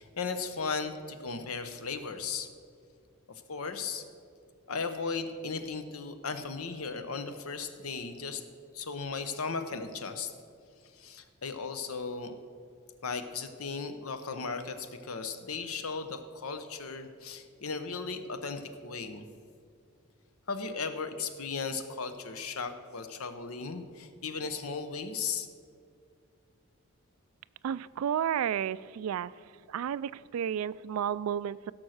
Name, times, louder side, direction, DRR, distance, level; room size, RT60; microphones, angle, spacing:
voice 1, 0.0-2.5 3.3-4.0 4.7-8.4 8.7-10.3 10.9-12.3 13.0-19.3 20.5-25.5, left 4 dB, 85° left, 9 dB, 0.9 m, -36 dB
voice 2, 27.6-29.3 29.7-31.7, right 9 dB, 80° right, 20 dB, 0.3 m, -32 dB
16.0 x 6.3 x 6.4 m, 2.2 s
head